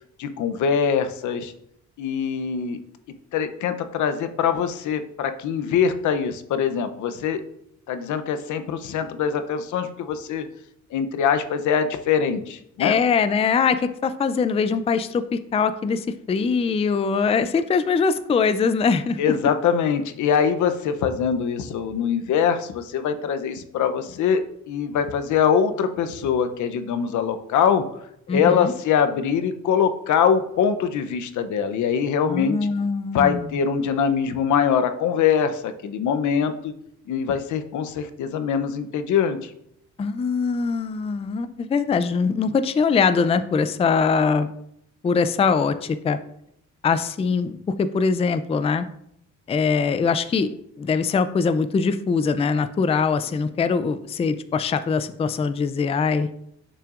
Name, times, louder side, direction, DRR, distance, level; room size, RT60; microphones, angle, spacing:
voice 1, 0.2-1.5 2.0-2.8 3.3-7.4 7.9-10.5 10.9-13.0 19.2-27.8 28.3-32.6 33.1-36.7 37.1-39.5, left 7 dB, 75° left, 9 dB, 0.7 m, -23 dB
voice 2, 12.8-19.2 28.3-28.7 32.2-33.4 40.0-44.5 45.0-46.2 46.8-48.9 49.5-50.5 50.8-56.3, left 5 dB, 20° left, 11 dB, 0.4 m, -22 dB
6.9 x 5.7 x 2.5 m, 0.74 s
cardioid pair, 90°, 30 cm